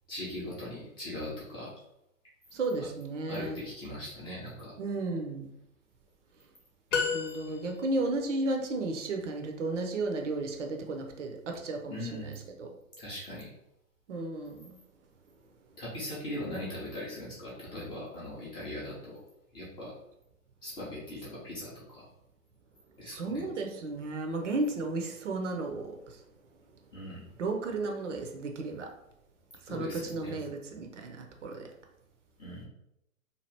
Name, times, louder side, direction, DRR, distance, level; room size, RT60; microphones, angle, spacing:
voice 1, 0.1-1.7 2.8-2.9 3.3-4.7 11.9-12.4 13.0-13.5 15.8-19.2 19.5-19.9 20.6-22.1 23.0-23.4 26.9-27.2 29.7-30.4 32.4-32.6, left 1 dB, 10° left, -8 dB, 0.5 m, -40 dB
voice 2, 2.5-3.6 4.8-5.5 7.1-12.7 14.1-14.8 23.0-26.2 27.4-28.9 29.7-31.7, right 2 dB, 60° right, 3 dB, 0.7 m, -34 dB
srhoenhut mfp B, 6.9-8.0, left 5 dB, 55° left, 0.8 m, -31 dB
2.8 x 2.4 x 3.2 m, 0.81 s
figure-of-eight pair, 110°, 42 cm